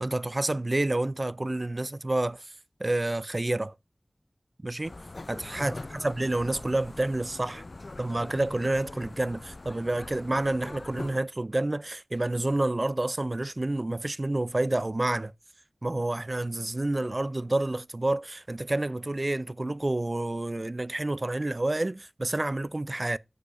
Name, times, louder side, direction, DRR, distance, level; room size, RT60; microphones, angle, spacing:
voice 1, 0.0-2.5 2.8-3.7 4.6-4.9 5.3-5.8 6.0-7.6 8.0-15.3 15.8-23.2, right 2 dB, 40° right, 0.3 m, -29 dB
sound 1, 4.8-11.2, left 2 dB, 60° left, 0.3 m, -42 dB
6.9 x 4.8 x 5.0 m
wide cardioid pair, 50°, 0 cm